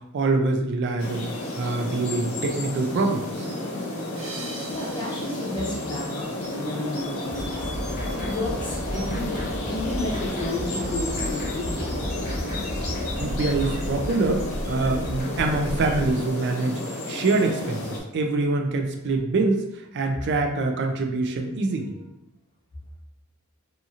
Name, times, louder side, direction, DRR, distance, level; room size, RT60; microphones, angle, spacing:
voice 1, 0.1-1.3 1.6-3.5 13.2-19.6 19.9-22.0, right 3 dB, 55° right, 3 dB, 0.4 m, -25 dB
sound 1, 1.0-18.0, left 2 dB, 75° left, 0.6 m, -32 dB
sound 2, 4.2-7.2, right 3 dB, 75° right, 0.7 m, -43 dB
voice 2, 4.7-7.7 8.1-11.9, left 1 dB, 20° left, -4 dB, 0.7 m, -32 dB
sound 3, 7.2-16.1, equal, 50° left, 0.9 m, -33 dB
2.7 x 2.7 x 2.4 m, 0.89 s
head